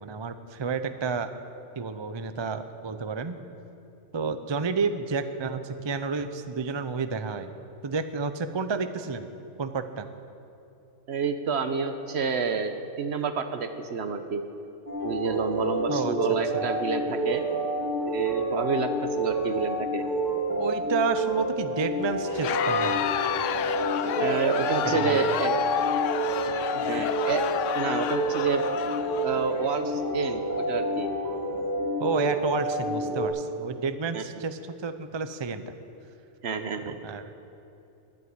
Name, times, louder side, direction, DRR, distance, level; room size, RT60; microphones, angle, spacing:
voice 1, 0.0-1.3 1.8-3.4 4.1-7.5 7.8-9.3 9.6-10.1 15.9-16.1 16.5-16.6 20.5-23.2 24.8-25.2 32.0-35.7 36.9-37.3, right 4 dB, 30° right, 10 dB, 0.5 m, -30 dB
voice 2, 11.1-14.4 15.0-17.4 18.1-20.0 24.2-25.5 26.7-28.6 29.2-31.1 34.1-34.2 36.4-37.0, right 5 dB, 60° right, 8 dB, 1.1 m, -29 dB
sound 1, 14.9-33.3, right 1 dB, 15° right, 4.1 m, -29 dB
Crowd, 22.3-29.8, left 10 dB, 85° left, 1.0 m, -30 dB
11.5 x 11.0 x 9.5 m, 2.8 s
omnidirectional pair, 1.3 m